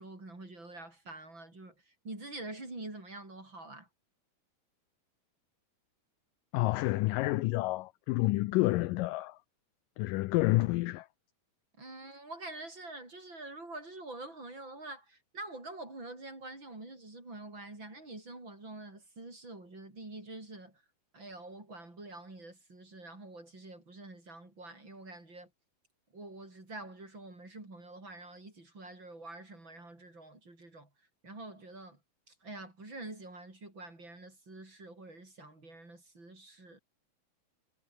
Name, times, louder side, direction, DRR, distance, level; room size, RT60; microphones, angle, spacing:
voice 1, 0.0-3.9 11.8-20.8 21.1-25.5 26.1-30.9 31.2-32.0 32.3-36.8, right 2 dB, 30° right, 7.6 m, -46 dB
voice 2, 6.5-9.4 10.0-11.1, left 19 dB, 80° left, 2.0 m, -29 dB
omnidirectional pair, 4.4 m